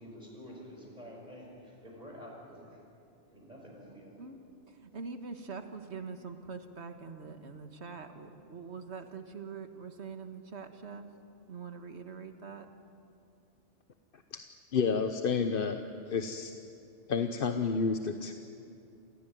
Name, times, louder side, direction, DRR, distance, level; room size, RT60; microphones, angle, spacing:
voice 1, 0.0-2.8 3.3-4.3, equal, 35° right, -1 dB, 5.8 m, -49 dB
voice 2, 4.7-11.1 11.5-12.7, right 5 dB, 60° right, 7 dB, 1.8 m, -44 dB
voice 3, 14.7-16.5 17.1-18.3, left 5 dB, 50° left, 7 dB, 1.0 m, -30 dB
28.5 x 16.0 x 9.3 m, 2.7 s
omnidirectional pair, 1.3 m